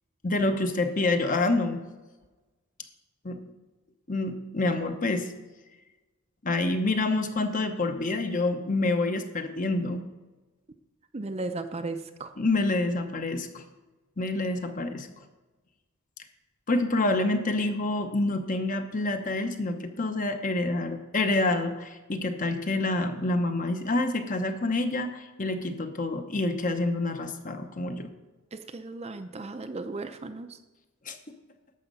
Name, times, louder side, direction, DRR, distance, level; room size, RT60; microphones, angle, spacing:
voice 1, 0.2-1.8 3.2-3.4 4.1-5.3 6.4-10.0 12.4-13.6 14.2-15.1 16.7-28.1 31.1-31.2, left 2 dB, 35° left, 7 dB, 0.9 m, -27 dB
voice 2, 11.1-12.3 28.5-30.6, right 3 dB, 30° right, 8 dB, 0.5 m, -36 dB
11.5 x 7.2 x 5.4 m, 1.2 s
head